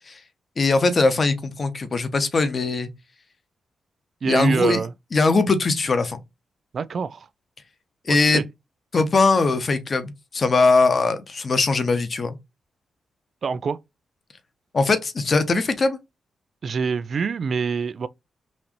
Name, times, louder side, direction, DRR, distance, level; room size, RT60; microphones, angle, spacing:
voice 1, 0.6-2.9 4.2-4.8 5.1-6.2 8.1-8.4 8.9-12.4 14.7-16.0, left 3 dB, 50° left, 0.9 m, -20 dB
voice 2, 4.2-4.9 6.7-7.3 8.1-8.5 13.4-13.8 16.6-18.1, right 5 dB, 60° right, 0.4 m, -25 dB
4.2 x 2.6 x 3.0 m
supercardioid pair, 45°, 0 cm